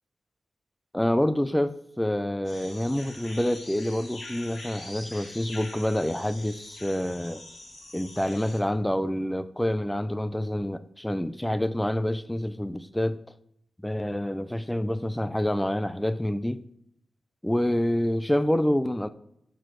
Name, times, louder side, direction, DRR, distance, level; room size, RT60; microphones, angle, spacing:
voice 1, 0.9-7.4 7.9-13.2 13.8-16.6 17.4-19.1, left 1 dB, 5° left, 0.4 m, -27 dB
sound 1, 2.4-8.6, left 2 dB, 65° left, 2.1 m, -44 dB
6.6 x 6.0 x 3.1 m
cardioid pair, 85°, 0 cm